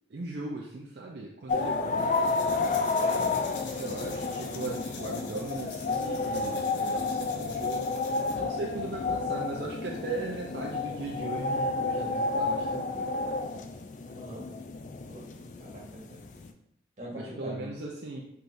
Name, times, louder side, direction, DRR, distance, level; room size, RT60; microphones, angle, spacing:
voice 1, 0.1-2.4 2.9-7.9 8.3-13.1 17.1-18.2, right 2 dB, 65° right, -2 dB, 0.5 m, -38 dB
sound 1, 1.5-16.5, left 3 dB, 40° left, 0.3 m, -31 dB
sound 2, 2.0-8.4, left 4 dB, 85° left, 0.8 m, -46 dB
voice 2, 14.0-14.4 15.0-16.2 17.0-17.7, equal, 40° right, -4 dB, 1.3 m, -43 dB
6.1 x 3.4 x 2.6 m, 0.80 s
head